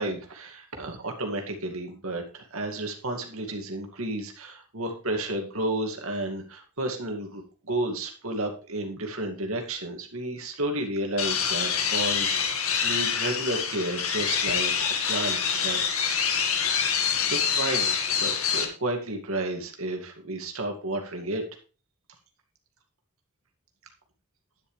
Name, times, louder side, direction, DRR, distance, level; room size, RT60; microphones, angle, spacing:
voice 1, 0.0-15.8 16.0-16.2 17.3-21.4, right 1 dB, 80° right, 3 dB, 2.3 m, -32 dB
sound 1, 11.2-18.6, left 7 dB, 85° left, 1.8 m, -26 dB
10.5 x 10.5 x 3.3 m, 0.35 s
head